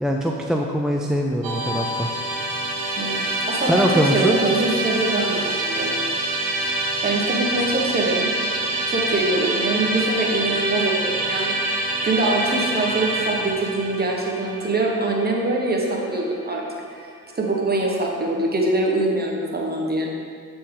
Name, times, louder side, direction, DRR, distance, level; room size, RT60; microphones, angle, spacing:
voice 1, 0.0-2.1 3.7-4.4, equal, ahead, 0 dB, 0.4 m, -22 dB
Musical instrument, 1.4-16.6, right 2 dB, 80° right, 1.0 m, -26 dB
voice 2, 3.0-6.0 6.6-8.3 8.9-11.6 12.0-16.6 17.3-20.1, right 2 dB, 30° right, -1 dB, 1.2 m, -23 dB
7.5 x 4.2 x 3.8 m, 2.1 s
cardioid pair, 75°, 34 cm